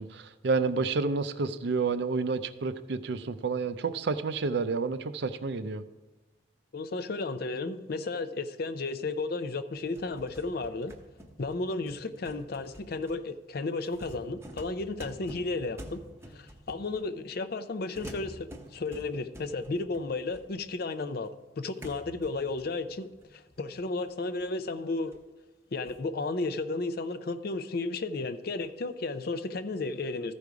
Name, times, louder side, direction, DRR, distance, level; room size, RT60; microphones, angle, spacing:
voice 1, 0.0-5.8, right 4 dB, 60° right, 12 dB, 0.5 m, -30 dB
voice 2, 6.7-10.9 11.4-16.0 16.3-25.1 25.7-30.3, left 3 dB, 50° left, 12 dB, 0.5 m, -33 dB
sound 1, 9.7-17.3 17.9-20.9 21.3-21.4 21.8-24.7 25.1-25.2 25.9-26.1, equal, 15° right, 0.7 m, -49 dB
14.0 x 5.2 x 4.8 m, 1.2 s
head